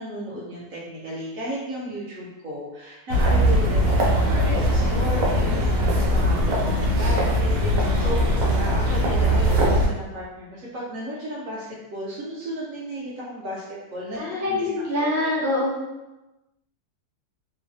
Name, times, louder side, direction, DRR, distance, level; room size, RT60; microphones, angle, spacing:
voice 1, 0.0-13.7 13.9-14.7 15.0-15.3, equal, 60° right, -7 dB, 1.0 m, -34 dB
sound 1, 3.1-9.9, equal, 85° right, 1.3 m, -20 dB
voice 2, 14.2-15.7, left 2 dB, 20° right, -9 dB, 0.4 m, -24 dB
3.1 x 2.2 x 2.6 m, 1.0 s
omnidirectional pair, 1.8 m